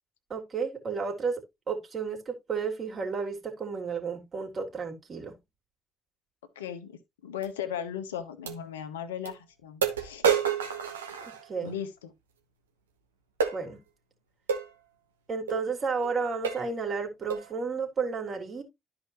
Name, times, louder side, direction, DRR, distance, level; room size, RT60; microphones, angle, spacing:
voice 1, 0.3-5.3 11.2-11.7 13.5-13.8 15.3-18.6, right 5 dB, 45° right, 3.1 m, -32 dB
voice 2, 6.6-10.2 11.6-12.1, left 9 dB, 80° left, 1.0 m, -37 dB
sound 1, 7.4-7.5 8.5-8.6 9.3-9.4 9.8-11.8 13.4-13.6 14.5-14.7 15.5-15.6 16.0-16.1 16.4-16.7 17.3-17.5, right 7 dB, 80° right, 0.9 m, -29 dB
12.5 x 4.9 x 2.9 m
figure-of-eight pair, 45°, 0 cm